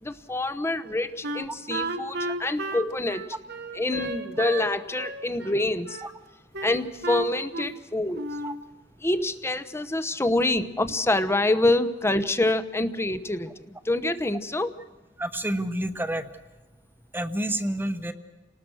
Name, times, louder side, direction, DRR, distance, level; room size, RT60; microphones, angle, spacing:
voice 1, 0.0-3.3 3.8-6.0 6.6-8.3 9.0-14.7, left 2 dB, 15° left, 12 dB, 1.0 m, -26 dB
Wind instrument woodwind instrument, 1.2-4.7 5.0-6.1 6.5-7.8 8.1-8.6, right 2 dB, 65° right, 1.7 m, -33 dB
voice 2, 15.2-16.2 17.1-18.1, right 1 dB, 10° right, 9 dB, 1.2 m, -29 dB
29.5 x 19.0 x 6.3 m, 1.2 s
head